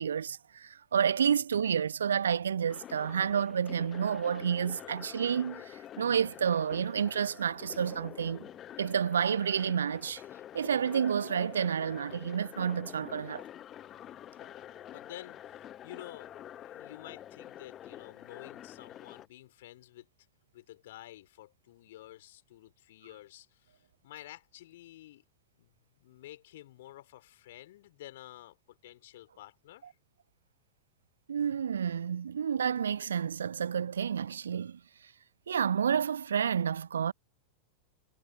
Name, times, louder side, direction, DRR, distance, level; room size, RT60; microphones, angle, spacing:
voice 1, 0.0-8.5 8.8-10.2 10.5-13.4 31.3-34.8 35.5-37.1, right 7 dB, 70° right, 0.4 m, -30 dB
sound 1, 2.7-19.3, left 11 dB, 30° left, 0.9 m, -47 dB
voice 2, 4.6-5.0 14.3-20.1 20.5-25.2 25.6-25.7 26.0-29.9, left 15 dB, 55° left, 3.8 m, -51 dB
figure-of-eight pair, 90°, 0 cm